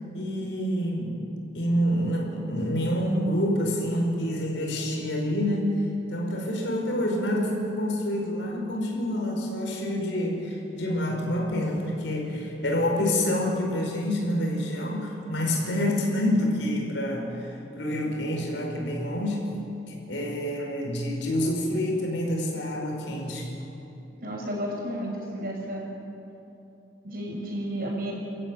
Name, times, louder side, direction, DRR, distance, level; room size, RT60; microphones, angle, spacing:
voice 1, 0.1-1.2 1.5-19.6 19.9-23.5, left 1 dB, 85° left, 0 dB, 5.3 m, -27 dB
voice 2, 24.2-25.9 27.0-28.1, equal, 55° right, -2 dB, 6.9 m, -32 dB
29.0 x 14.0 x 9.3 m, 2.9 s
head